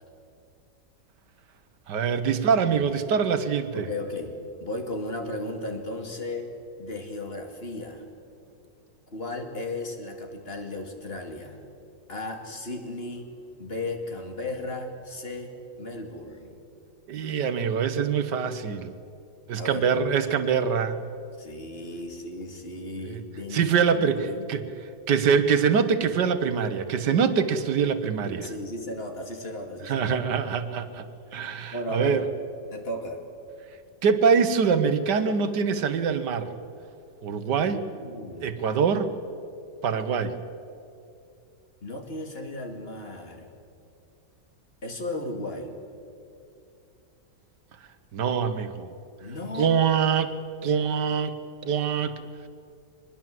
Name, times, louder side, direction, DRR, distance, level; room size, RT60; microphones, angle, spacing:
voice 1, 1.9-3.9 17.1-18.9 19.5-21.0 23.1-23.2 23.5-24.6 25.1-28.5 29.9-31.1 31.3-32.2 34.0-36.5 37.2-37.8 38.4-39.1 39.8-40.3 48.1-48.9 49.6-50.3 50.6-51.3 51.6-52.2, right 6 dB, 80° right, 11 dB, 1.8 m, -24 dB
voice 2, 3.7-6.5 6.8-8.0 9.1-11.6 12.1-13.3 13.6-16.6 19.5-20.1 21.4-24.5 28.3-30.4 31.7-32.2 32.7-33.2 37.7-38.5 41.8-43.5 44.8-45.7 49.2-49.8, left 2 dB, 35° left, 4 dB, 2.6 m, -35 dB
23.5 x 20.5 x 7.7 m, 2.5 s
omnidirectional pair, 1.8 m